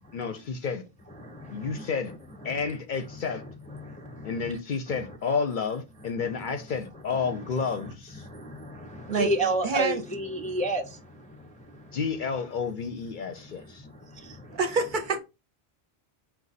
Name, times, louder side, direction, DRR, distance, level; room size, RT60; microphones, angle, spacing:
voice 1, 0.1-0.8 1.5-2.1 2.4-3.4 4.2-8.3 11.9-13.9, left 5 dB, 55° left, 0.6 m, -30 dB
voice 2, 1.1-2.2 2.4-2.7 3.4-4.5 4.9-5.0 6.2-6.4 7.4-7.5 7.8-12.0 13.5-14.6, right 1 dB, 10° left, 0.4 m, -33 dB
voice 3, 9.6-10.0 14.5-15.2, right 4 dB, 55° right, 0.7 m, -26 dB
4.7 x 2.3 x 4.0 m
omnidirectional pair, 1.1 m